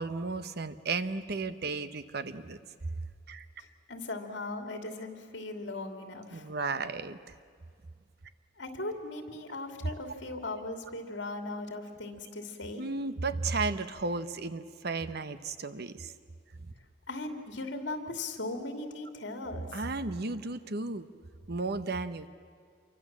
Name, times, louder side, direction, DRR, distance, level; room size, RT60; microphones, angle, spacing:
voice 1, 0.0-2.6 3.3-3.5 6.3-7.2 12.8-16.1 16.6-16.7 19.7-21.1 21.5-22.3, right 3 dB, 55° right, 12 dB, 1.0 m, -34 dB
voice 2, 3.6-6.5 8.6-12.8 17.1-19.8, left 2 dB, 65° left, 5 dB, 2.7 m, -38 dB
27.5 x 24.0 x 7.4 m, 2.1 s
head